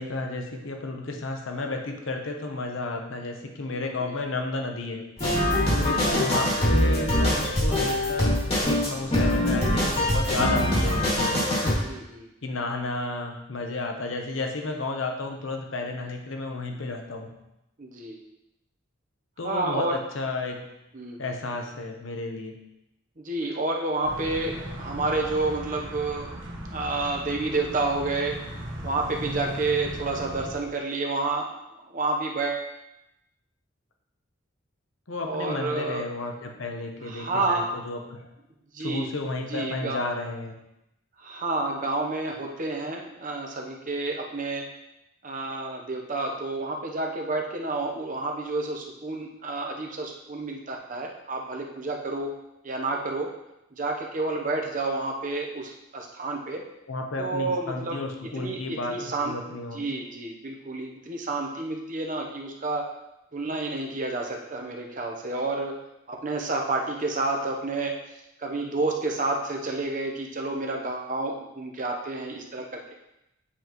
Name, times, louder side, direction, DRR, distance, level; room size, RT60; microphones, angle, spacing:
voice 1, 0.0-5.0 5.7-8.4 8.6-11.4 12.4-17.3 19.4-20.6 21.2-22.6 35.1-38.3 38.8-40.5 56.9-59.8, left 2 dB, 75° left, 3 dB, 0.9 m, -32 dB
voice 2, 3.8-4.1 5.7-5.9 11.8-12.3 17.8-18.2 19.4-20.0 20.9-21.2 23.2-26.3 26.7-28.4 28.8-31.5 31.9-32.7 35.2-36.0 37.0-37.7 38.7-39.1 39.5-40.0 41.2-44.6 45.2-52.3 52.6-53.3 53.8-56.6 57.2-58.0 58.4-59.4 59.7-62.9 63.3-65.8 66.1-68.0 68.4-72.9, right 3 dB, 40° right, 1 dB, 0.8 m, -30 dB
sound 1, 5.2-11.7, left 1 dB, 30° left, 2.1 m, -23 dB
sound 2, 24.0-30.5, equal, 60° right, 1.3 m, -37 dB
8.5 x 5.2 x 3.0 m, 0.87 s
head